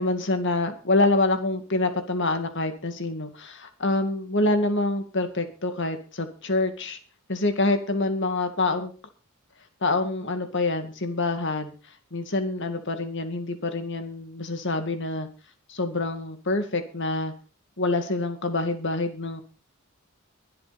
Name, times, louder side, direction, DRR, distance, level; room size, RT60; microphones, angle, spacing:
voice 1, 0.0-7.0 7.3-8.9 9.8-11.7 12.1-15.3 15.7-17.3 17.8-19.4, left 2 dB, 60° left, 8 dB, 2.2 m, -26 dB
23.0 x 7.9 x 4.2 m, 0.36 s
head